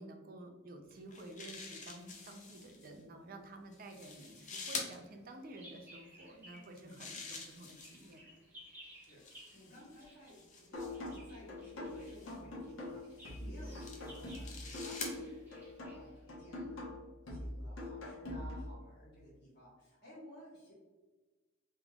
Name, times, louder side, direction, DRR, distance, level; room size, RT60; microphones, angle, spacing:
voice 1, 0.0-8.2 13.4-13.6, right 2 dB, 45° right, 4 dB, 0.5 m, -51 dB
sound 1, 0.9-2.9 3.7-4.9 6.6-8.2 9.0-11.2 12.0-12.4 13.2-15.2, left 4 dB, 40° left, 0.5 m, -47 dB
Bird vocalization bird call bird song, 4.6-6.8 7.1-16.6, equal, 10° right, 1.0 m, -59 dB
voice 2, 8.9-15.6 15.9-17.0 17.2-20.7, equal, 55° left, -6 dB, 1.2 m, -55 dB
sound 2, 10.7-18.7, left 1 dB, 80° left, 1.1 m, -44 dB
3.5 x 3.1 x 2.4 m, 1.3 s
head